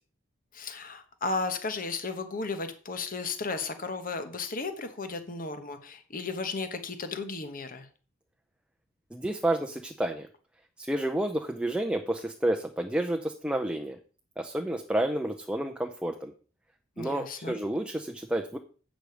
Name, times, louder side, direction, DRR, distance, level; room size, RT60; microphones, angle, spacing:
voice 1, 0.5-7.9 17.0-17.6, left 3 dB, 45° left, 9 dB, 1.1 m, -34 dB
voice 2, 9.1-10.3 10.8-14.0 14.4-16.3 17.0-18.6, right 1 dB, 5° right, 4 dB, 0.6 m, -30 dB
8.2 x 6.3 x 4.9 m, 0.39 s
head